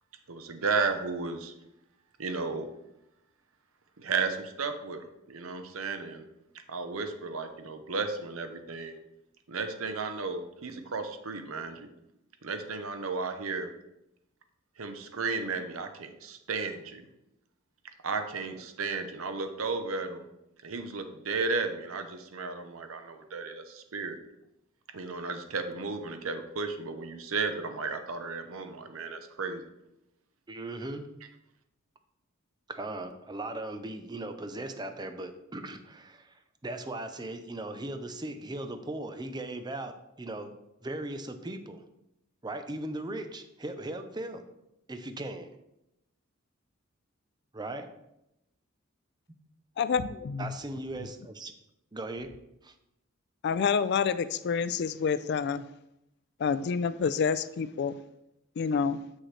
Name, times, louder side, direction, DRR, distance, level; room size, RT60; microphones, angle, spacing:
voice 1, 0.3-1.5 2.2-2.7 4.0-6.3 6.7-9.0 9.5-11.9 12.4-13.7 14.8-17.0 18.0-20.3 20.6-24.2 24.9-29.6, right 4 dB, 90° right, 8 dB, 0.8 m, -34 dB
voice 2, 30.5-31.1 32.7-40.5 40.8-41.8 42.4-44.4 44.9-45.5 47.5-47.9 50.4-51.5 51.9-52.3 52.6-52.7, right 2 dB, 20° right, 8 dB, 0.5 m, -38 dB
voice 3, 49.8-50.5 53.4-55.6 56.4-58.0 58.6-59.0, left 6 dB, 55° left, 14 dB, 0.3 m, -28 dB
7.6 x 6.4 x 3.2 m, 0.86 s
head